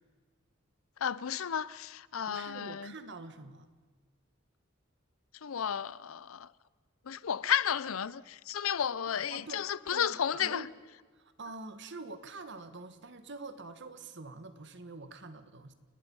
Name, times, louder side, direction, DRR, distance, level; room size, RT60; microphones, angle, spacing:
voice 1, 1.0-2.9 5.4-6.5 7.1-10.7, left 8 dB, 90° left, 0.6 m, -33 dB
voice 2, 2.3-3.7 9.1-10.7 11.1-15.7, right 3 dB, 60° right, 1.5 m, -46 dB
29.5 x 19.0 x 5.5 m
head